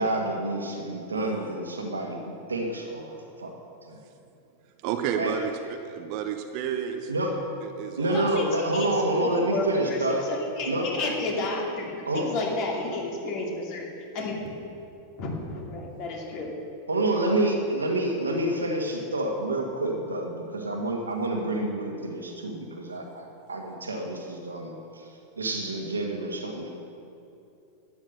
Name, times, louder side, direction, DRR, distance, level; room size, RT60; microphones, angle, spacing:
voice 1, 0.0-3.5 3.9-4.0 5.2-5.4 7.1-7.3 8.0-10.2 10.7-10.9 12.1-12.3 16.9-26.7, right 1 dB, 75° right, 1 dB, 1.8 m, -28 dB
voice 2, 4.8-5.5 5.8-7.1 7.6-8.6 11.0-11.1, right 9 dB, 45° right, 6 dB, 0.9 m, -31 dB
voice 3, 8.1-8.9 9.1-13.9 14.1-14.5 15.2-16.5, left 2 dB, 40° left, -1 dB, 2.6 m, -32 dB
12.0 x 9.3 x 6.7 m, 2.7 s
figure-of-eight pair, 90°, 0 cm